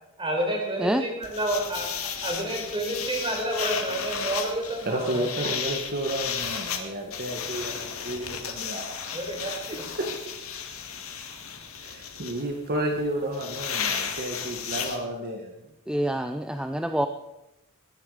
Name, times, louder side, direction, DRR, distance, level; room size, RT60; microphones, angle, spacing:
voice 1, 0.2-5.3 9.1-9.8, right 1 dB, 25° right, 0 dB, 4.7 m, -29 dB
sound 1, 1.2-15.0, left 7 dB, 70° left, 2.0 m, -34 dB
voice 2, 4.8-9.0 9.7-10.1 11.8-15.5, right 1 dB, 45° right, 2 dB, 1.6 m, -31 dB
voice 3, 15.9-17.1, right 1 dB, 5° right, 7 dB, 0.5 m, -26 dB
21.5 x 10.5 x 5.0 m, 0.93 s
head